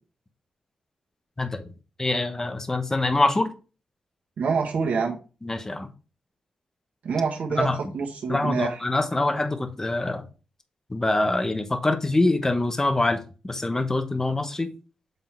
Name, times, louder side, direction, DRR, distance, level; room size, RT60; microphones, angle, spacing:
voice 1, 2.0-3.5 5.4-5.9 7.6-7.8 8.3-10.2 10.9-14.7, left 2 dB, 20° left, 7 dB, 1.0 m, -24 dB
voice 2, 4.4-5.2 7.0-8.8, right 5 dB, 75° right, 0 dB, 1.3 m, -26 dB
8.0 x 3.8 x 4.5 m, 0.34 s
wide cardioid pair, 110°, 3 cm